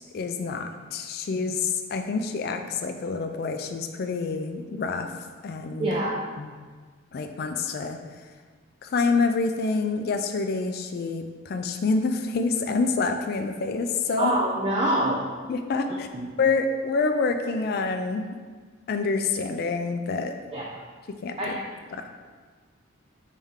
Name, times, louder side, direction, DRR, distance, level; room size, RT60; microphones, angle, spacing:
voice 1, 0.1-5.9 6.4-6.5 7.1-8.0 8.8-14.3 15.5-16.1 16.4-18.3 18.9-20.3 21.2-21.6 21.9-22.0, left 4 dB, 50° left, 6 dB, 0.3 m, -27 dB
voice 2, 5.8-6.2 14.2-15.2 16.1-16.3 20.5-20.8 21.4-21.6, right 1 dB, 25° right, -3 dB, 0.4 m, -25 dB
4.1 x 3.5 x 3.6 m, 1.5 s
head